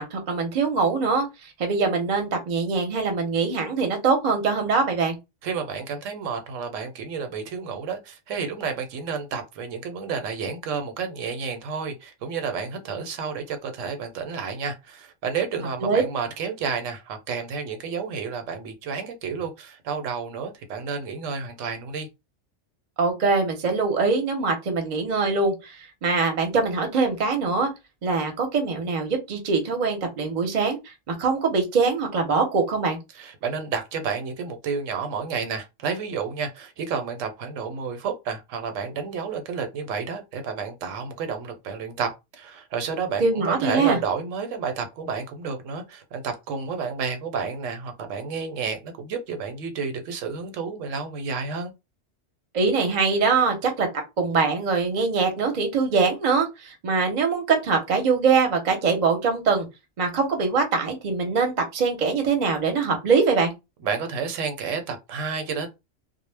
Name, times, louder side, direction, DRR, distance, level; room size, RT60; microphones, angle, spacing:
voice 1, 0.0-5.2 15.8-16.0 23.0-27.7 28.0-33.0 43.2-44.0 52.5-53.9 54.2-59.7 60.0-63.5, right 4 dB, 45° right, 0.7 m, -23 dB
voice 2, 5.4-22.1 33.1-42.1 42.4-51.7 63.8-65.7, right 5 dB, 80° right, 0.9 m, -30 dB
2.1 x 2.0 x 3.2 m
omnidirectional pair, 1.3 m